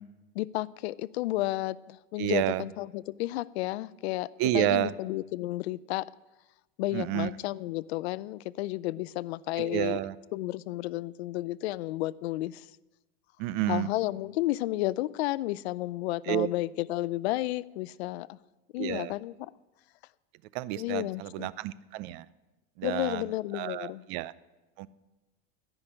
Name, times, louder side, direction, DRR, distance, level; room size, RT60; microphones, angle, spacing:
voice 1, 0.3-6.1 6.8-10.0 10.3-12.7 13.7-18.4 18.7-19.5 20.8-21.5 22.8-24.0, left 17 dB, 80° left, 19 dB, 0.5 m, -32 dB
voice 2, 2.2-2.6 4.4-4.9 6.9-7.3 9.6-10.1 13.4-13.9 16.3-16.5 18.8-19.1 20.5-22.2 22.8-23.2 23.5-24.3 24.8-24.9, right 15 dB, 55° right, 18 dB, 0.6 m, -30 dB
14.0 x 6.0 x 9.9 m, 1.1 s
supercardioid pair, 130°, 32 cm